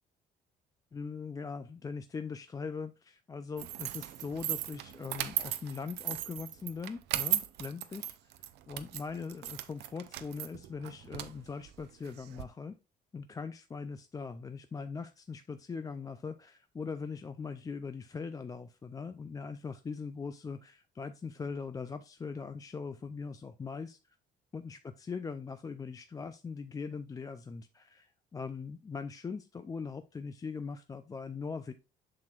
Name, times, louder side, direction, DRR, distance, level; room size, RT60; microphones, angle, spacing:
voice 1, 0.9-8.1 8.7-12.8 13.1-24.0 24.5-31.7, left 5 dB, 20° left, 10 dB, 0.4 m, -41 dB
sound 1, 3.6-12.4, right 13 dB, 80° right, 0.6 m, -37 dB
7.5 x 5.9 x 2.4 m, 0.27 s
cardioid pair, 110°, 17 cm